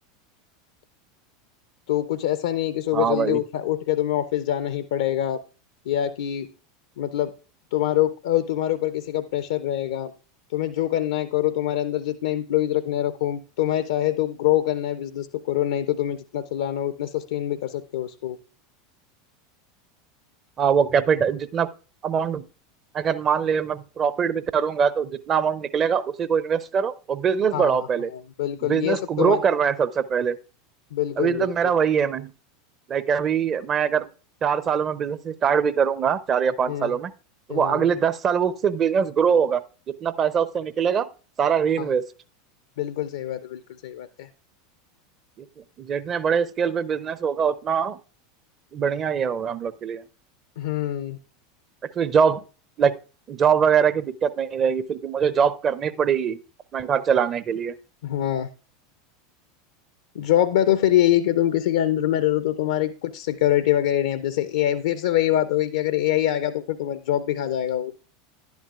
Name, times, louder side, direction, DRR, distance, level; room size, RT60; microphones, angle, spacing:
voice 1, 1.9-5.4 5.9-6.5 7.0-7.3 7.7-10.1 10.5-18.4 27.5-29.4 30.9-31.5 36.7-37.0 37.5-37.9 41.8-41.9 42.8-44.3 50.6-51.2 58.0-58.5 60.1-67.9, left 12 dB, 70° left, 12 dB, 0.4 m, -24 dB
voice 2, 2.9-3.4 20.6-21.7 22.0-22.4 22.9-28.1 28.6-30.4 31.2-32.3 32.9-34.1 34.4-37.1 37.5-39.6 40.0-41.1 41.4-42.0 45.4-45.5 45.8-48.0 48.7-50.0 52.0-52.4 52.8-52.9 53.3-56.4 56.7-57.7, right 7 dB, 35° right, 15 dB, 0.6 m, -23 dB
11.0 x 10.5 x 2.4 m, 0.35 s
hypercardioid pair, 85°, 0 cm